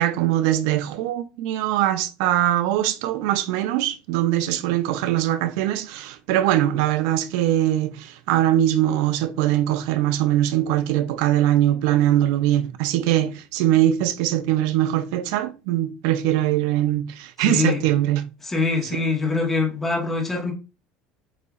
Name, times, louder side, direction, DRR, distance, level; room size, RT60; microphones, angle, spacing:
voice 1, 0.0-18.2, right 13 dB, 75° right, 0.4 m, -22 dB
voice 2, 17.4-17.8 18.4-20.5, left 3 dB, 10° left, 1.2 m, -24 dB
7.9 x 2.8 x 2.4 m
cardioid pair, 160°, 3 cm